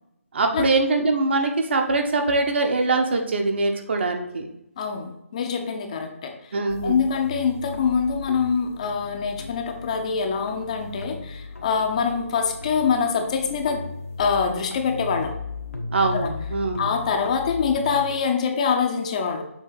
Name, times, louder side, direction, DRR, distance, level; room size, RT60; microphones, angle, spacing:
voice 1, 0.3-4.5 6.5-7.0 15.9-16.9, right 3 dB, 50° right, 4 dB, 1.0 m, -23 dB
voice 2, 4.8-6.6 6.8-13.8 14.2-15.4 16.1-16.3 16.8-19.4, left 6 dB, 30° left, 5 dB, 0.6 m, -24 dB
sound 1, 6.7-18.2, left 3 dB, 80° left, 1.1 m, -36 dB
6.9 x 2.8 x 5.5 m, 0.84 s
figure-of-eight pair, 155°, 8 cm